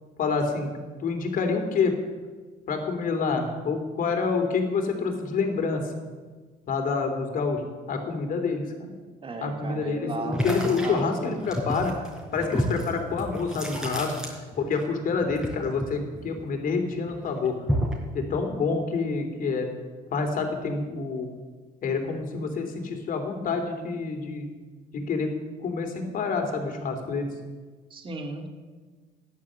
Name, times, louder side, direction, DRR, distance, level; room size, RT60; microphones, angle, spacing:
voice 1, 0.2-2.0 2.7-5.8 6.7-7.6 7.9-9.0 9.4-12.0 12.3-17.6 18.1-19.7 20.1-21.3 21.8-24.5 24.9-25.3 25.6-27.3, left 4 dB, 55° left, 5 dB, 3.0 m, -27 dB
voice 2, 9.2-11.3 27.9-28.5, right 3 dB, 30° right, 3 dB, 2.1 m, -36 dB
sound 1, 10.3-14.8 15.1-16.7 17.1-18.1, equal, 5° right, 4.3 m, -30 dB
14.5 x 11.0 x 7.5 m, 1.4 s
cardioid pair, 110°, 17 cm